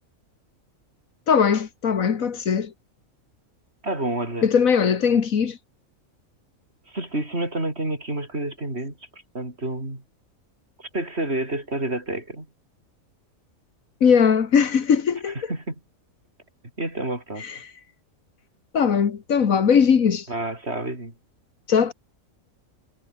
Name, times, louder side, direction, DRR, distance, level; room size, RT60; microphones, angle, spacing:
voice 1, 1.3-2.7 4.4-5.6 14.0-15.4 17.4-17.6 18.7-20.3 21.7-21.9, left 6 dB, 80° left, 1.9 m, -19 dB
voice 2, 3.8-4.5 6.9-10.0 10.8-12.5 15.3-15.8 16.8-17.4 20.3-21.1, right 1 dB, 50° right, 7.0 m, -29 dB
omnidirectional pair, 1.4 m